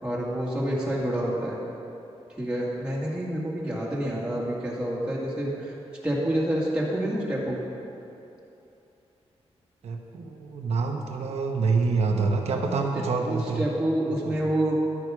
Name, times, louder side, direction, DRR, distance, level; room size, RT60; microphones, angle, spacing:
voice 1, 0.0-1.6 2.3-5.7 6.0-7.6 13.2-14.8, right 1 dB, 10° right, -6 dB, 2.1 m, -28 dB
voice 2, 9.8-13.6 14.1-14.4, right 4 dB, 80° right, 3 dB, 1.0 m, -26 dB
11.0 x 9.3 x 4.9 m, 2.9 s
wide cardioid pair, 145°, 11 cm